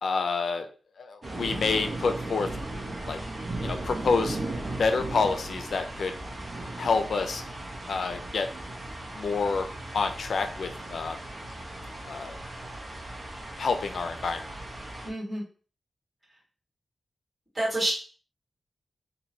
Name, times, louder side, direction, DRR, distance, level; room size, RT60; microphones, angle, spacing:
voice 1, 0.0-0.7 1.0-2.5 3.1-3.2 3.6-4.4 4.8-6.1 6.8-7.4 7.9-8.5 9.1-9.7 9.9-11.2 12.1-12.4 13.6-14.4, left 4 dB, 75° left, 7 dB, 0.5 m, -28 dB
sound 1, 1.2-15.1, right 2 dB, 45° right, 1.0 m, -37 dB
voice 2, 15.0-15.4 17.5-17.9, right 1 dB, 20° right, -7 dB, 1.8 m, -28 dB
2.9 x 2.6 x 4.3 m, 0.39 s
wide cardioid pair, 160°, 0 cm